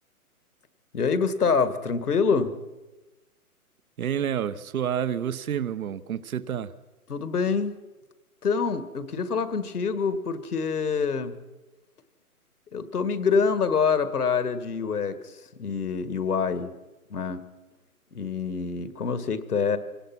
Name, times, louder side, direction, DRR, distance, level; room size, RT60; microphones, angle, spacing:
voice 1, 0.9-2.6 7.1-7.8 8.4-11.4 12.7-16.7 17.1-17.4 18.1-19.8, left 5 dB, 80° left, 12 dB, 2.0 m, -26 dB
voice 2, 4.0-6.7, right 9 dB, 65° right, 15 dB, 1.1 m, -29 dB
24.5 x 18.5 x 6.0 m, 1.1 s
hypercardioid pair, 145°, 45 cm